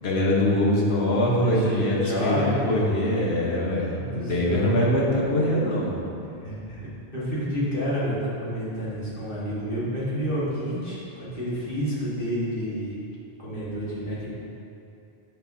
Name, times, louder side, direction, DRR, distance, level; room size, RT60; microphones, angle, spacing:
voice 1, 0.0-6.0, left 1 dB, 85° left, -4 dB, 1.4 m, -23 dB
voice 2, 1.4-2.6 3.9-4.8 6.4-13.0 13.4-14.3, equal, 60° left, -10 dB, 1.9 m, -30 dB
7.9 x 6.9 x 2.7 m, 2.7 s
omnidirectional pair, 1.0 m